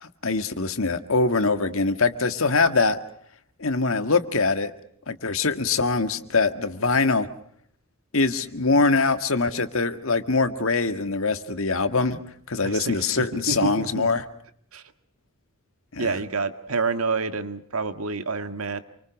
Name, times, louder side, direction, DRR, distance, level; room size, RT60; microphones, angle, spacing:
voice 1, 0.0-3.0 3.6-4.7 5.1-7.3 8.1-12.2 12.5-14.2 15.9-16.1, left 3 dB, 65° left, 10 dB, 1.8 m, -23 dB
voice 2, 12.6-14.1 14.7-14.8 16.0-18.8, right 4 dB, 80° right, 10 dB, 1.9 m, -28 dB
28.5 x 24.5 x 6.4 m, 0.64 s
head